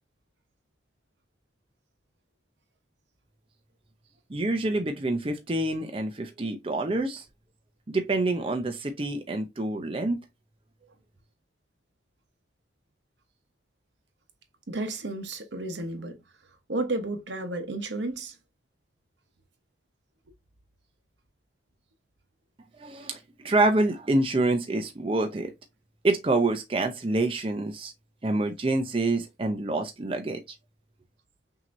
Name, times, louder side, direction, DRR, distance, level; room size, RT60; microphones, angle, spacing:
voice 1, 4.3-7.2 7.9-10.2 22.8-25.5 26.0-27.9 28.2-30.4, right 2 dB, 30° right, 0.5 m, -27 dB
voice 2, 14.7-16.2 16.7-18.3, right 2 dB, 70° right, 0.9 m, -32 dB
5.9 x 2.8 x 2.5 m
head